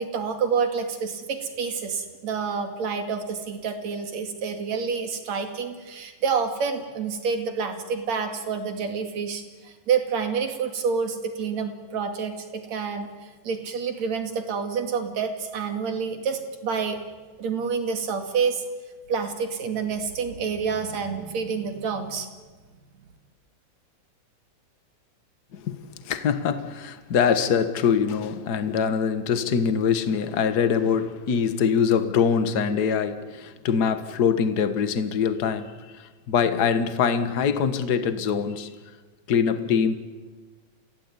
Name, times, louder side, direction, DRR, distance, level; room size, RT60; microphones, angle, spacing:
voice 1, 0.0-13.1 13.4-17.0 17.4-18.6 19.1-22.3, right 6 dB, 55° right, 6 dB, 3.4 m, -28 dB
voice 2, 26.0-38.7 39.3-39.9, left 7 dB, 50° left, 10 dB, 1.2 m, -23 dB
29.0 x 16.5 x 9.8 m, 1.4 s
omnidirectional pair, 3.8 m